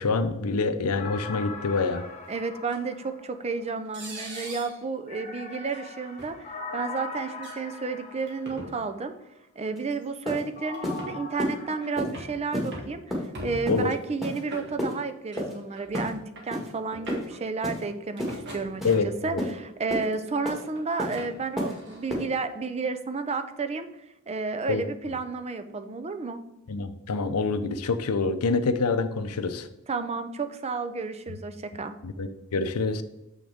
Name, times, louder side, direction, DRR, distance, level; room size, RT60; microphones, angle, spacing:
voice 1, 0.0-2.1 13.7-13.9 18.8-19.4 24.7-24.8 26.7-29.7 31.3-31.4 32.0-33.0, left 4 dB, 85° left, 11 dB, 0.7 m, -26 dB
sound 1, 1.0-3.8 5.1-8.9 10.6-11.9, left 4 dB, 30° left, 1.2 m, -41 dB
voice 2, 2.3-6.4 6.7-9.1 9.6-23.9 24.3-26.4 29.9-31.9, right 4 dB, 30° right, 9 dB, 0.5 m, -32 dB
sound 2, 2.7-2.8 3.9-4.8 5.6-5.8 6.2-6.3 7.3-7.6 8.3-8.7 9.9-10.0 10.7-11.2 11.8-12.4 12.7-13.0 13.3-13.8 14.5-15.0 15.3-15.4 15.7-16.5 16.9-17.4 18.2-19.2 19.8-20.2 20.8-22.1, equal, 55° right, 1.9 m, -41 dB
sound 3, 9.8-9.9 10.3-10.4 10.8-11.0 11.4-11.5 12.0-12.1 12.5-12.7 13.1-13.3 13.7-13.8 14.2-14.4 14.8-14.9 15.4-15.5 15.9-16.1 16.5-16.7 17.1-17.3 17.6-17.8 18.2-18.4 18.8-19.0 19.4-19.5 19.9-20.1 20.5-20.6 21.0-21.2 21.6-21.7 22.1-22.2, left 1 dB, ahead, 1.7 m, -30 dB
7.3 x 6.1 x 3.5 m, 0.93 s
head